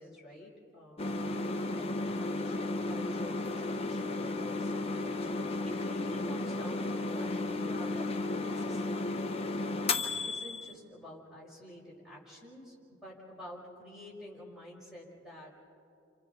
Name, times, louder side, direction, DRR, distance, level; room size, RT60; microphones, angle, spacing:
voice 1, 0.0-12.8 13.0-15.6, equal, 5° right, -5 dB, 5.6 m, -49 dB
sound 1, 1.0-10.7, left 2 dB, 30° left, 0.9 m, -34 dB
30.0 x 27.0 x 4.2 m, 2.6 s
head